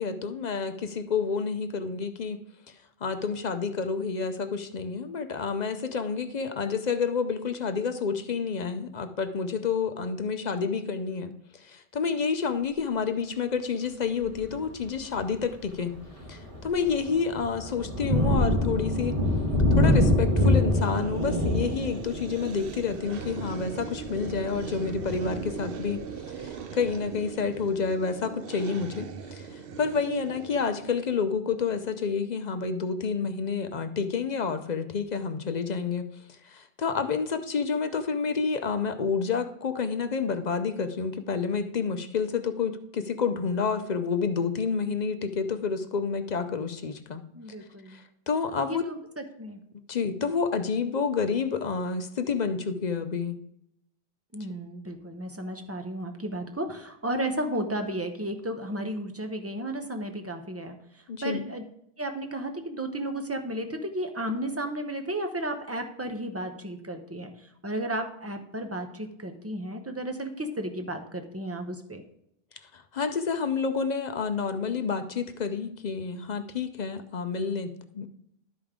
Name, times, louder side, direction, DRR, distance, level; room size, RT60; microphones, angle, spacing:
voice 1, 0.0-2.4 3.0-15.9 16.3-19.2 19.7-36.1 36.4-47.2 47.9-48.9 49.9-53.4 61.1-61.5 72.7-78.1, left 5 dB, 50° left, 9 dB, 0.6 m, -29 dB
Thunder, 14.2-14.6 15.1-15.3 15.7-26.3, left 1 dB, 35° right, 1.5 m, -26 dB
sound 1, 20.7-31.2, right 6 dB, 70° right, 0.8 m, -39 dB
voice 2, 47.3-48.0 48.7-49.0 49.4-49.6 54.3-60.8 61.2-61.6 62.0-67.3 67.6-72.0, right 1 dB, 15° right, 5 dB, 0.7 m, -33 dB
12.0 x 5.2 x 3.6 m, 0.76 s
omnidirectional pair, 1.0 m